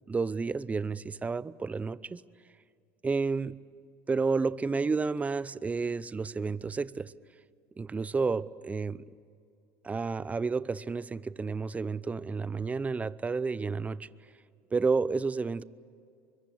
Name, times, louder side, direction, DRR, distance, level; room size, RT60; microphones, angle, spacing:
voice 1, 0.1-2.2 3.0-3.6 4.1-7.1 7.8-9.1 9.8-14.1 14.7-15.6, right 4 dB, 20° right, 18 dB, 0.7 m, -31 dB
24.5 x 22.5 x 8.0 m, 2.4 s
supercardioid pair, 95°, 7 cm